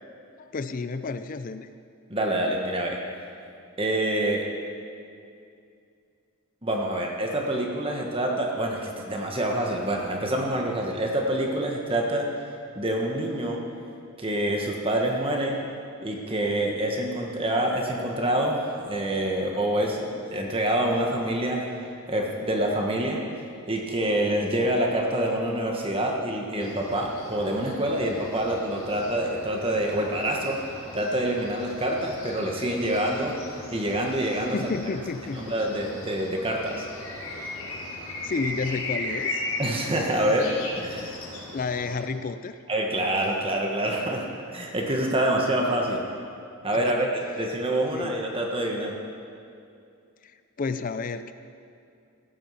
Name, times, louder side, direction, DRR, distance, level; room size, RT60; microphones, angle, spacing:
voice 1, 0.4-1.7 34.5-35.5 38.2-39.4 41.5-42.6 46.7-47.1 47.9-48.2 50.2-50.3 50.6-51.3, left 4 dB, 40° left, 11 dB, 0.4 m, -31 dB
voice 2, 2.1-3.0 3.8-4.5 6.6-12.3 12.7-13.6 14.2-15.6 16.0-21.6 22.1-23.2 23.7-30.6 30.9-33.3 33.7-34.6 35.4-36.8 39.6-41.2 42.7-46.0 46.6-48.9, right 1 dB, 25° right, 0 dB, 1.4 m, -26 dB
sound 1, 26.6-42.0, left 2 dB, 75° left, 3.0 m, -38 dB
15.5 x 9.0 x 5.7 m, 2.5 s
head